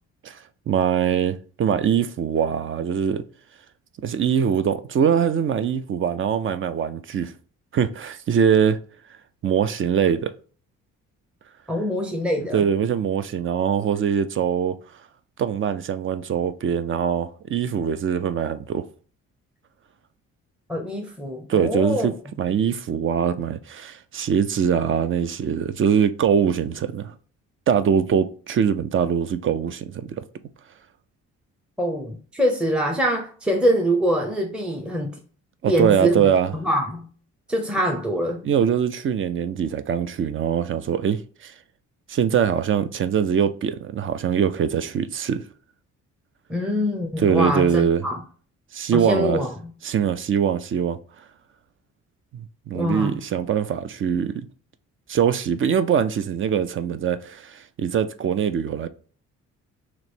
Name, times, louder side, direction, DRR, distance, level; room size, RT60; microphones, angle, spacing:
voice 1, 0.7-3.2 4.0-7.3 7.7-8.8 9.4-10.3 12.5-14.8 15.4-18.8 21.5-27.1 27.7-30.2 35.6-36.5 38.4-41.5 42.1-45.4 47.2-48.1 48.7-49.4 49.8-51.0 52.3-54.5 55.1-58.9, right 8 dB, 45° right, 0.4 m, -22 dB
voice 2, 11.7-12.7 20.7-22.1 31.8-35.1 35.7-36.3 36.5-37.1 37.5-38.4 46.5-48.2 48.9-49.7 52.7-53.1, equal, 5° right, 0.7 m, -24 dB
3.0 x 3.0 x 4.3 m
cardioid pair, 90°, 30 cm